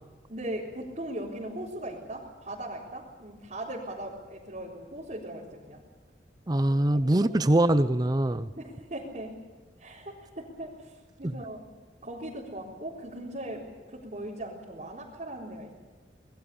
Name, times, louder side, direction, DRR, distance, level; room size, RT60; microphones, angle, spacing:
voice 1, 0.3-5.8 6.7-7.3 8.6-9.3 9.8-11.6 12.0-15.7, right 1 dB, 40° right, -5 dB, 4.0 m, -39 dB
voice 2, 6.5-8.5, right 1 dB, 20° right, 12 dB, 0.6 m, -23 dB
25.5 x 20.5 x 7.1 m, 1.4 s
head